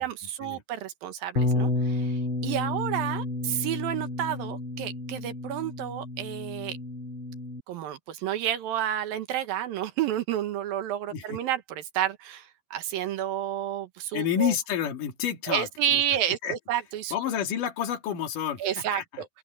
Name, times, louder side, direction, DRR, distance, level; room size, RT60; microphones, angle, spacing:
voice 1, 0.0-6.8 7.7-14.5 15.5-17.4 18.6-19.3, right 11 dB, 70° right, 2.8 m, -30 dB
Bass guitar, 1.4-7.6, left 2 dB, 35° left, 2.9 m, -31 dB
voice 2, 14.1-16.0 16.4-16.6 17.1-18.6 18.9-19.2, left 9 dB, 60° left, 3.9 m, -29 dB
open air
omnidirectional pair, 4.5 m